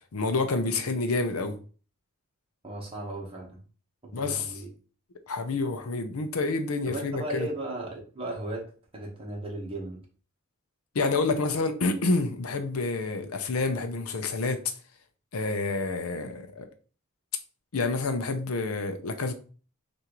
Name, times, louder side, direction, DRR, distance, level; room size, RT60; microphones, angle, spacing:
voice 1, 0.1-1.6 4.1-4.6 5.3-7.5 10.9-14.6 15.3-16.7 17.7-19.3, left 3 dB, 85° left, 0.7 m, -28 dB
voice 2, 2.6-3.6 4.0-4.7 6.8-8.7 8.9-10.0, right 2 dB, 25° right, 1.2 m, -36 dB
5.8 x 2.6 x 3.0 m
head